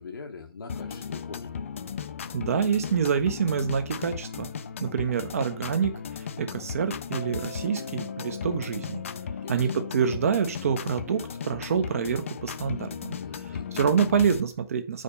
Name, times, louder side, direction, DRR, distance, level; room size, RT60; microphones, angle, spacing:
voice 1, 0.0-1.5 9.4-9.7 13.2-13.6, left 4 dB, 60° left, 0.8 m, -42 dB
sound 1, 0.7-14.4, left 7 dB, 35° left, 0.3 m, -36 dB
voice 2, 2.3-4.5 4.8-9.0 9.5-13.2 13.5-15.0, right 7 dB, 35° right, 0.6 m, -27 dB
Mallet percussion, 7.1-13.5, left 2 dB, 85° left, 1.1 m, -47 dB
5.0 x 4.2 x 5.2 m
figure-of-eight pair, 140°, 13 cm